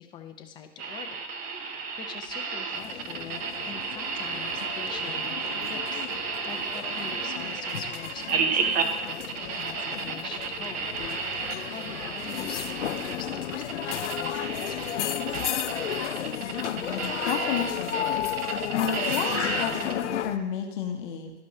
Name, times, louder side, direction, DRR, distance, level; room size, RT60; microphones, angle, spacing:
voice 1, 0.0-10.9 11.7-15.4, left 8 dB, 15° left, 5 dB, 0.5 m, -44 dB
sound 1, 0.8-20.0, right 5 dB, 25° right, 0.7 m, -32 dB
sound 2, 2.7-20.4, left 10 dB, 80° left, 0.6 m, -33 dB
voice 2, 17.3-18.1 18.7-21.3, left 8 dB, 45° left, 3 dB, 1.0 m, -31 dB
13.0 x 5.1 x 2.8 m, 0.96 s
hypercardioid pair, 135°, 35 cm